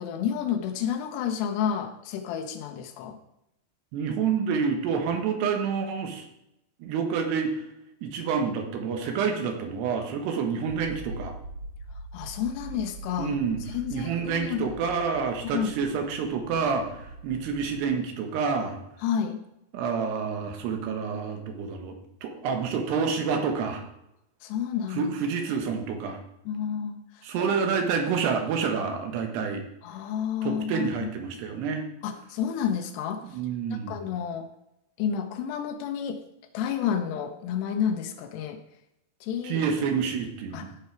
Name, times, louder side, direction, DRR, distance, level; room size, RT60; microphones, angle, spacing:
voice 1, 0.0-3.2 12.1-13.4 13.7-14.7 15.4-15.7 19.0-19.4 24.4-25.1 26.5-27.6 29.8-31.1 32.0-33.4 33.9-34.5 35.0-36.2 36.5-38.6 39.2-39.6 40.5-40.8, left 8 dB, 90° left, 5 dB, 3.0 m, -30 dB
voice 2, 3.9-6.3 6.8-7.6 8.0-11.3 13.2-13.6 13.9-18.8 19.7-23.8 25.0-26.2 27.2-29.6 30.4-31.9 33.3-33.9 39.4-40.7, right 6 dB, 80° right, 4 dB, 3.4 m, -28 dB
sound 1, 10.7-17.9, right 2 dB, 50° right, 3.1 m, -42 dB
15.0 x 6.0 x 4.6 m, 0.84 s
omnidirectional pair, 4.7 m